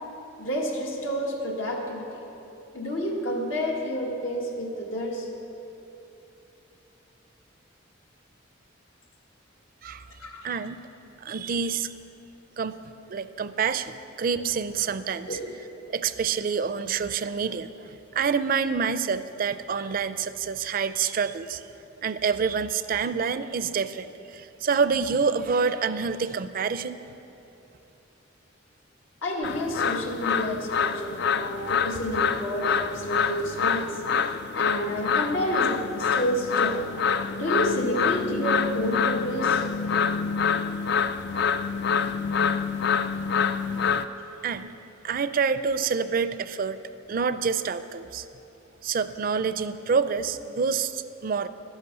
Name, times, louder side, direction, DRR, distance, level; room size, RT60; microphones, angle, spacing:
voice 1, 0.4-2.2 2.7-5.3 10.2-10.6 15.3-15.4 29.2-34.0 34.3-36.8 37.4-39.6, equal, 90° left, -1 dB, 1.7 m, -29 dB
voice 2, 10.4-10.8 11.2-11.9 12.6-12.8 13.1-15.4 15.9-21.6 22.0-27.0 44.4-44.7 45.0-46.8 47.1-48.3 48.8-51.5, right 5 dB, 45° right, 13 dB, 0.4 m, -27 dB
sound 1, 29.4-44.0, left 6 dB, 55° left, 0.4 m, -26 dB
11.5 x 10.5 x 6.8 m, 3.0 s
head